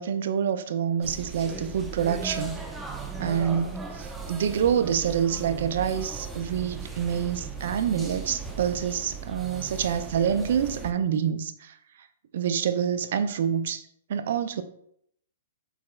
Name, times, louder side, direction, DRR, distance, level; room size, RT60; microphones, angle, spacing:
voice 1, 0.0-2.6 3.2-11.7 12.3-13.8 14.1-14.6, right 8 dB, 65° right, 0.4 m, -27 dB
sound 1, 1.0-10.9, right 4 dB, 10° right, 0.5 m, -37 dB
4.7 x 4.2 x 2.3 m
hypercardioid pair, 135°, 0 cm